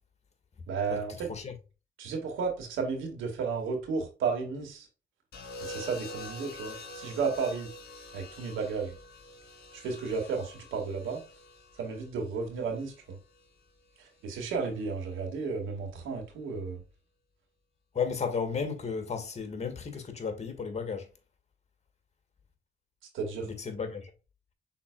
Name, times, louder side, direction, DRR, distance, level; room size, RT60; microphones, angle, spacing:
voice 1, 0.7-1.3 2.0-4.9 5.6-7.7 8.1-8.9 9.7-11.2 11.8-13.2 14.0-16.8 23.1-23.5, right 5 dB, 90° right, 1.9 m, -33 dB
sound 1, 5.3-13.5 14.7-15.1, left 1 dB, 55° left, 1.9 m, -46 dB
voice 2, 17.9-21.1 23.4-24.1, left 5 dB, 35° left, 1.6 m, -33 dB
5.9 x 4.0 x 2.3 m
cardioid pair, 90°, 20 cm